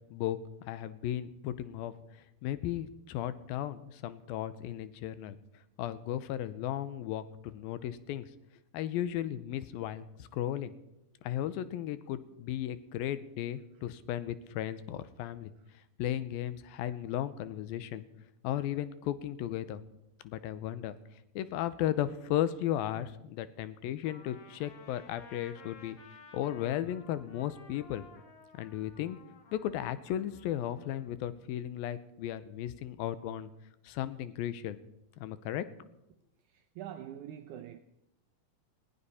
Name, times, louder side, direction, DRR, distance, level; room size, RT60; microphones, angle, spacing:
voice 1, 0.7-1.9 2.4-5.4 5.8-8.3 8.7-10.7 11.2-15.5 16.0-18.0 18.4-19.8 20.2-21.0 21.4-26.0 26.3-28.0 28.5-29.2 29.5-33.5 33.8-34.8 35.2-35.7, left 12 dB, 85° left, 2.5 m, -35 dB
Trumpet, 24.0-31.1, left 4 dB, 50° left, 2.2 m, -55 dB
voice 2, 36.5-37.8, right 10 dB, 80° right, 1.8 m, -44 dB
20.5 x 15.5 x 4.2 m
omnidirectional pair, 4.3 m